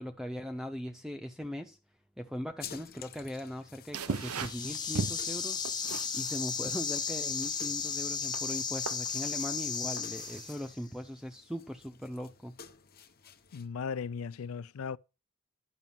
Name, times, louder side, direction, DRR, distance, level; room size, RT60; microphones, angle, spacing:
voice 1, 0.0-1.8 2.2-12.6, equal, ahead, 0.5 m, -40 dB
sound 1, 2.6-13.7, left 7 dB, 45° left, 1.0 m, -52 dB
sound 2, 3.9-10.7, right 5 dB, 85° right, 0.7 m, -40 dB
sound 3, 4.1-10.8, left 6 dB, 20° left, 1.1 m, -35 dB
voice 2, 13.5-15.0, left 6 dB, 75° left, 0.4 m, -37 dB
11.0 x 6.0 x 5.7 m
head